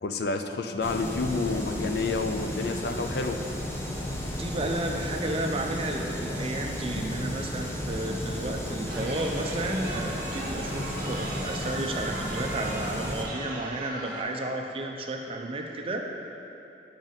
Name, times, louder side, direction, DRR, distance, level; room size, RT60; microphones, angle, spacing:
voice 1, 0.0-3.4, left 3 dB, 55° left, 6 dB, 0.4 m, -29 dB
sound 1, 0.8-13.2, left 1 dB, 15° left, 0.6 m, -34 dB
voice 2, 4.3-16.1, right 1 dB, 30° right, 2 dB, 0.5 m, -32 dB
Chatter, 8.9-14.2, right 2 dB, 50° right, 0.9 m, -38 dB
8.9 x 5.1 x 4.0 m, 2.8 s
head